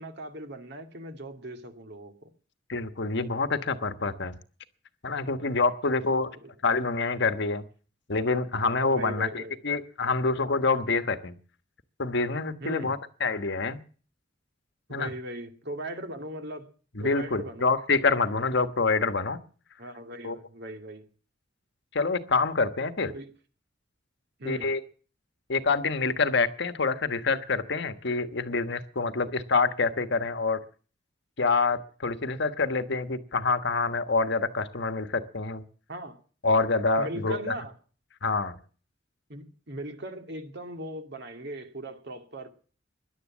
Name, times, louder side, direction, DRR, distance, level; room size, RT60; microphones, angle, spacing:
voice 1, 0.0-2.3 6.4-6.5 8.9-9.6 12.6-13.0 14.9-16.7 17.0-17.7 19.8-21.1 23.1-23.3 24.4-24.7 35.9-36.2 37.0-37.7 39.3-42.5, right 1 dB, 60° right, 6 dB, 2.3 m, -39 dB
voice 2, 2.7-4.4 5.0-6.3 6.6-7.6 8.1-11.3 12.0-13.8 14.9-15.1 16.9-19.4 20.2-20.4 21.9-23.1 24.4-24.8 25.5-30.6 31.4-35.6 36.4-37.5 38.2-38.6, left 4 dB, 65° left, 10 dB, 1.3 m, -26 dB
17.0 x 11.0 x 7.4 m, 0.42 s
head